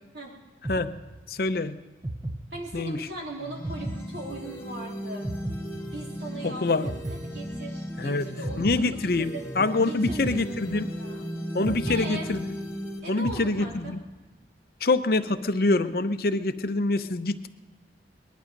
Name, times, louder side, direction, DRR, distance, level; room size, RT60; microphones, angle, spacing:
sound 1, 0.6-1.5 2.0-3.1 3.6-4.8 5.2-6.4 6.8-8.0 8.4-9.5 10.0-11.2 11.6-12.8 13.2-14.1, right 1 dB, 15° right, 0.6 m, -37 dB
voice 1, 1.3-1.8 2.7-3.1 6.4-6.9 8.0-8.2 8.6-10.9 11.5-12.4 13.1-14.0 14.8-17.5, left 2 dB, 55° left, 10 dB, 0.6 m, -25 dB
voice 2, 2.5-5.3 5.9-9.4 9.9-11.3 11.8-12.3 13.0-14.0, right 1 dB, 70° right, -2 dB, 3.6 m, -39 dB
sound 2, 3.4-13.0, equal, 15° left, 2.1 m, -36 dB
20.0 x 11.5 x 5.3 m, 1.2 s
head